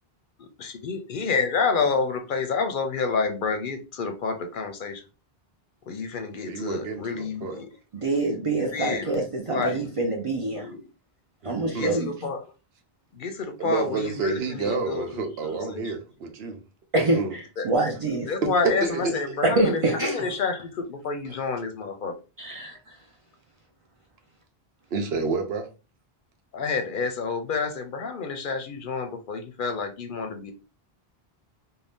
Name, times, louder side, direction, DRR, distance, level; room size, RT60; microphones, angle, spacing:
voice 1, 0.6-5.0 5.9-7.7 8.7-9.2 9.5-9.9 10.4-10.8 11.7-12.5 13.1-15.9 17.6-17.7 18.2-22.2 26.5-30.5, left 4 dB, 60° left, 0.6 m, -29 dB
voice 2, 6.5-7.6 11.4-12.0 13.6-16.6 17.0-17.3 18.4-19.1 21.3-21.4 24.9-25.7, right 4 dB, 80° right, 0.9 m, -29 dB
voice 3, 7.9-10.7 11.4-12.1 16.9-18.3 19.4-20.2 22.4-22.8, right 2 dB, 50° right, 0.4 m, -25 dB
2.6 x 2.1 x 3.4 m
omnidirectional pair, 1.0 m